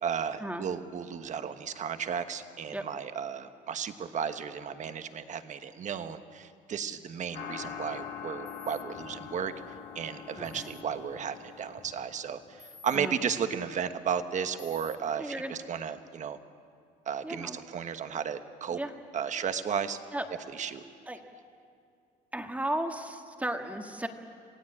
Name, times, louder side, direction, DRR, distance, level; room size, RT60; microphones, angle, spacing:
voice 1, 0.0-9.5 9.9-16.4 17.1-18.8 19.1-20.0 20.5-20.8, right 7 dB, 45° right, 9 dB, 1.3 m, -34 dB
sound 1, 7.3-12.6, left 8 dB, 60° left, 2.5 m, -43 dB
sound 2, 8.5-8.8 10.4-10.8 12.6-13.0 14.6-15.0, left 5 dB, 25° left, 1.8 m, -51 dB
voice 2, 10.4-10.7 12.9-13.1 15.2-15.5 17.2-17.6 18.7-18.9 20.1-20.3 21.1-21.2 22.3-24.1, right 1 dB, 10° right, 5 dB, 1.7 m, -35 dB
27.5 x 17.0 x 8.8 m, 2.3 s
cardioid pair, 110°, 17 cm